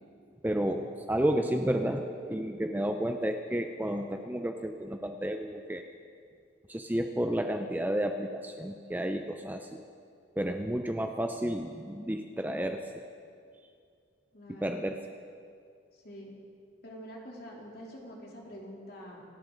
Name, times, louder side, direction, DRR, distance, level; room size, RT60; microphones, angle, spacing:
voice 1, 0.4-5.8 6.7-9.8 10.4-13.0 14.5-15.0, right 1 dB, 10° right, 5 dB, 0.5 m, -31 dB
voice 2, 14.3-14.8 15.9-16.3 16.8-19.2, equal, 50° left, -2 dB, 3.2 m, -46 dB
27.0 x 12.5 x 3.9 m, 2.3 s
head